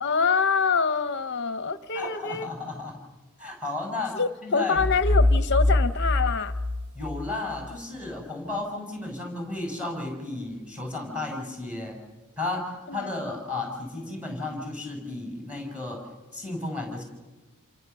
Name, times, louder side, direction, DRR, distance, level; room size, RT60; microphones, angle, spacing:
voice 1, 0.0-2.5 4.1-6.5 12.9-13.1, left 5 dB, 50° left, 11 dB, 0.7 m, -25 dB
voice 2, 1.9-3.0 3.4-4.8 6.9-12.0 12.4-16.0 16.3-17.0, left 2 dB, 5° right, 2 dB, 6.3 m, -33 dB
sound 1, 4.8-7.6, left 1 dB, 90° right, 1.7 m, -24 dB
28.0 x 26.5 x 6.9 m, 1.3 s
head